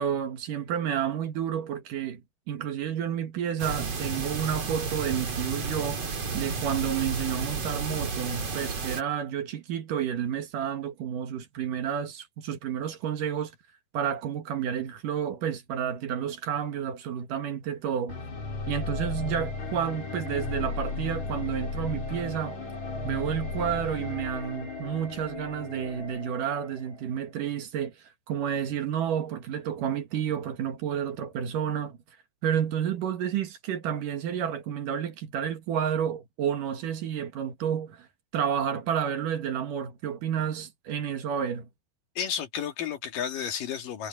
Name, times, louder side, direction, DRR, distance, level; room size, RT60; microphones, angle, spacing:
voice 1, 0.0-2.2 2.5-13.5 13.9-18.2 18.7-22.6 23.0-32.0 32.4-38.1 38.3-41.7, right 9 dB, 65° right, 3.1 m, -30 dB
sound 1, 3.6-9.0, right 4 dB, 45° right, 3.8 m, -32 dB
sound 2, 18.1-27.1, left 3 dB, 50° left, 5.3 m, -35 dB
voice 2, 42.2-44.1, left 8 dB, 65° left, 3.6 m, -32 dB
omnidirectional pair, 4.2 m